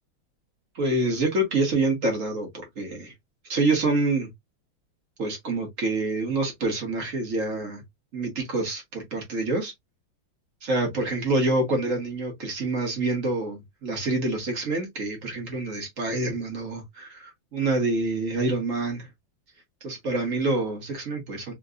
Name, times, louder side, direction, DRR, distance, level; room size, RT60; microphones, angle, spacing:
voice 1, 0.7-3.1 3.5-4.3 5.2-7.8 8.1-9.7 10.6-19.1 19.8-21.5, right 2 dB, 45° right, 1.4 m, -27 dB
3.8 x 3.0 x 2.4 m
omnidirectional pair, 2.3 m